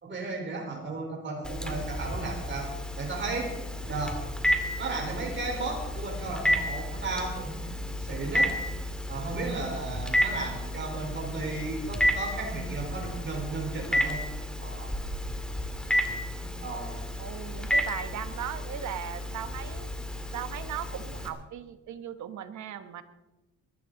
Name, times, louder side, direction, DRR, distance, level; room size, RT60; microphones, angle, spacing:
voice 1, 0.0-2.7 3.0-3.5 3.9-4.1 4.8-8.5 9.1-14.2 14.6-14.9 16.6-16.9, right 3 dB, 40° right, 0 dB, 4.2 m, -34 dB
Telephone, 1.4-21.3, equal, 5° left, 2.2 m, -32 dB
voice 2, 17.2-19.9 20.3-23.0, right 9 dB, 70° right, 10 dB, 1.3 m, -38 dB
22.0 x 12.5 x 3.9 m, 1.0 s
cardioid pair, 90°, 30 cm